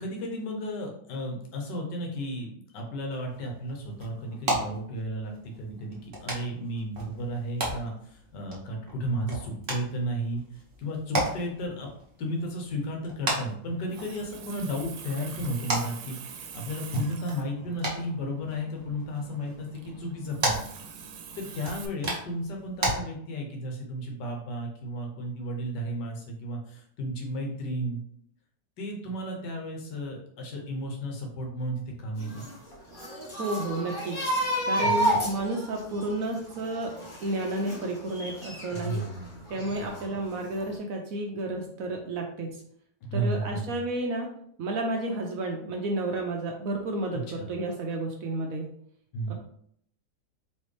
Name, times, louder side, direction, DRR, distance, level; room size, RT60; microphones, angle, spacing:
voice 1, 0.0-10.4 10.8-11.9 12.2-20.6 21.4-28.0 28.8-32.4 34.8-35.2 38.7-39.4 39.7-40.0 43.0-43.8 47.1-47.5 49.1-49.3, equal, 80° left, 2 dB, 1.6 m, -33 dB
sound 1, 3.1-22.9, right 1 dB, 35° right, 1.1 m, -36 dB
Water tap faucet, 13.7-21.9, right 7 dB, 85° right, 1.3 m, -45 dB
sound 2, 32.2-39.1 39.5-40.3 40.6-40.7, equal, 35° left, 1.4 m, -31 dB
voice 2, 33.4-34.3 34.7-36.9 37.2-39.0 39.5-42.6 43.1-44.3 44.6-48.7 49.3-49.4, right 2 dB, 70° right, 2 dB, 0.9 m, -31 dB
4.2 x 3.2 x 3.2 m, 0.67 s
omnidirectional pair, 1.8 m